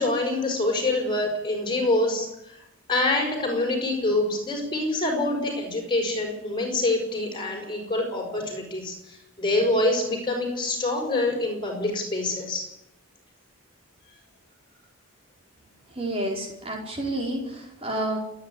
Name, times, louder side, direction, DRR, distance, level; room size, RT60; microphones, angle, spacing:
voice 1, 0.0-2.6 2.9-12.7, left 2 dB, 20° left, 2 dB, 6.1 m, -26 dB
voice 2, 15.9-18.2, right 1 dB, 25° right, 0 dB, 4.6 m, -29 dB
28.5 x 10.0 x 10.0 m, 0.85 s
head